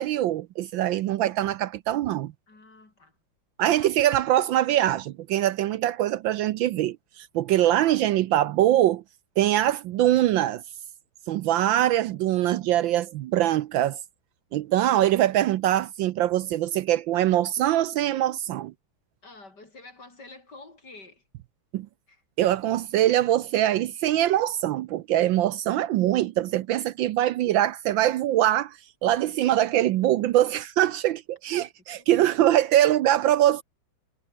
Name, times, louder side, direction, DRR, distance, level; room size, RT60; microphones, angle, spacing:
voice 1, 0.0-2.3 3.6-9.0 9.4-10.6 11.3-14.0 14.5-18.7 21.7-21.9 22.4-33.6, right 13 dB, 75° right, 1.3 m, -23 dB
voice 2, 2.5-3.2 3.8-3.9 7.6-8.0 11.4-11.7 19.2-21.2 22.1-22.2 32.0-32.1, left 3 dB, 50° left, 5.9 m, -48 dB
omnidirectional pair, 2.3 m